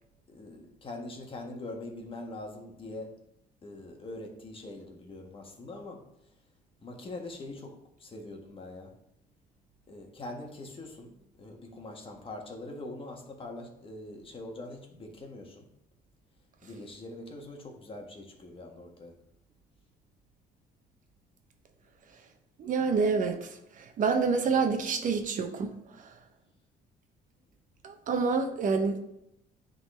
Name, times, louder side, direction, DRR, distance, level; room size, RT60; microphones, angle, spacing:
voice 1, 0.3-3.1 3.6-6.0 6.8-8.9 9.9-15.7 16.6-19.1, left 2 dB, 30° left, 2 dB, 1.5 m, -43 dB
voice 2, 22.6-23.5 23.8-25.7 27.8-29.0, right 5 dB, 50° right, 6 dB, 0.9 m, -27 dB
9.3 x 3.9 x 3.3 m, 0.80 s
cardioid pair, 110°, 17 cm